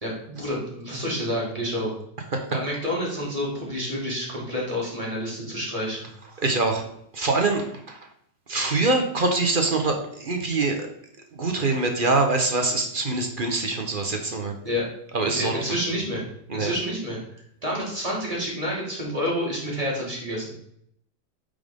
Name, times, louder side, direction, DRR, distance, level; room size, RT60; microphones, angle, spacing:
voice 1, 0.0-1.9 2.5-6.0 14.6-14.9 15.3-16.2 16.5-20.5, equal, 20° right, -4 dB, 2.7 m, -29 dB
voice 2, 6.4-6.8 7.1-8.0 8.5-10.9 11.3-14.6 15.1-15.6 16.5-16.7, right 3 dB, 35° right, 4 dB, 0.9 m, -24 dB
9.0 x 5.2 x 3.6 m, 0.71 s
omnidirectional pair, 1.9 m